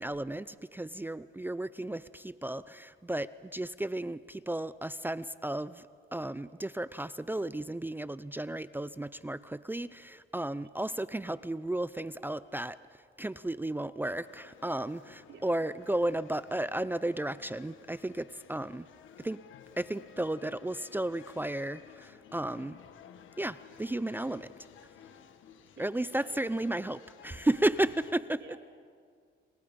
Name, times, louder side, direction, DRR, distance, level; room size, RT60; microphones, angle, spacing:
voice 1, 0.0-5.8 6.1-12.8 13.2-18.9 19.2-19.4 19.8-22.8 23.4-24.5 25.8-28.4, right 1 dB, 10° right, 16 dB, 0.5 m, -33 dB
sound 1, 14.2-28.1, left 8 dB, 75° left, 1.4 m, -55 dB
voice 2, 26.2-26.9 28.4-28.7, right 7 dB, 75° right, 3 dB, 3.4 m, -53 dB
28.5 x 24.5 x 5.3 m, 2.1 s
cardioid pair, 90°, 20 cm